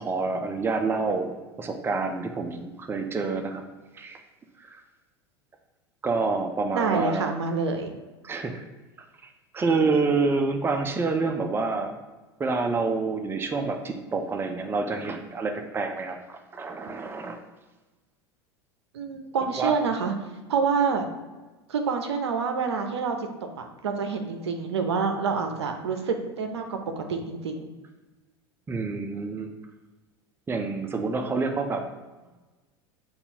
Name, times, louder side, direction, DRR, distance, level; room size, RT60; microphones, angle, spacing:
voice 1, 0.0-3.6 3.9-4.2 4.6-4.8 6.0-7.3 8.2-8.6 9.2-12.0 12.4-17.4 19.6-19.7 28.7-29.5 30.5-31.9, right 4 dB, 15° right, 5 dB, 0.5 m, -28 dB
voice 2, 6.7-7.9 18.9-20.1 20.5-21.1 21.7-23.3 23.6-27.7, right 5 dB, 75° right, 5 dB, 0.6 m, -27 dB
6.7 x 2.4 x 2.8 m, 1.2 s
figure-of-eight pair, 80°, 14 cm